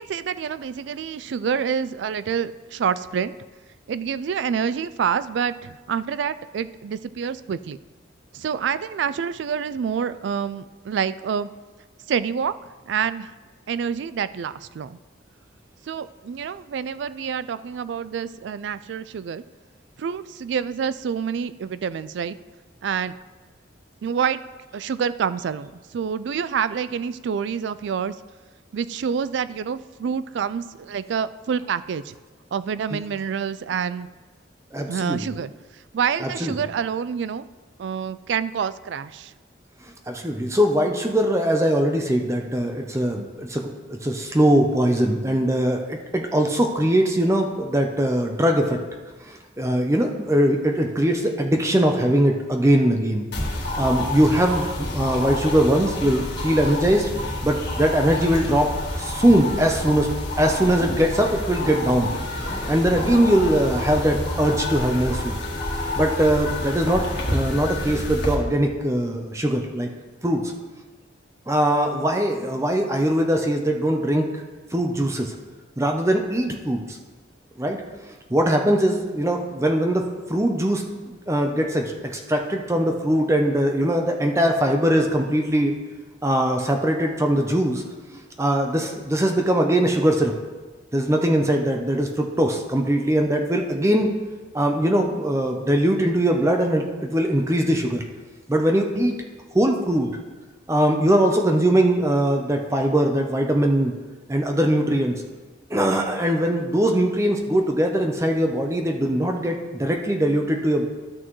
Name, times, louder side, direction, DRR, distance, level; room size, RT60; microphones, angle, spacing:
voice 1, 0.0-3.3 3.9-7.8 8.3-11.5 12.1-12.6 12.9-13.3 13.7-15.0 15.9-19.4 20.0-22.4 22.8-23.2 24.0-24.4 24.7-28.2 28.7-32.2 32.5-34.1 34.9-37.5 37.8-39.3, right 7 dB, 70° right, 15 dB, 0.3 m, -27 dB
voice 2, 34.7-35.3 36.2-36.5 40.1-48.8 49.2-53.3 53.8-54.7 54.9-57.1 57.4-58.7 59.0-62.1 62.7-65.4 66.0-69.9 70.2-70.5 71.5-74.3 74.7-75.3 75.8-77.0 77.6-77.8 78.3-85.7 86.2-87.8 88.1-90.3 90.9-94.1 94.5-98.0 98.5-99.2 99.5-100.2 100.7-103.9 104.3-105.1 105.7-110.9, right 1 dB, 15° right, 2 dB, 0.6 m, -21 dB
sound 1, 53.3-68.3, left 1 dB, 60° left, 1.6 m, -28 dB
13.0 x 6.1 x 3.1 m, 1.3 s
head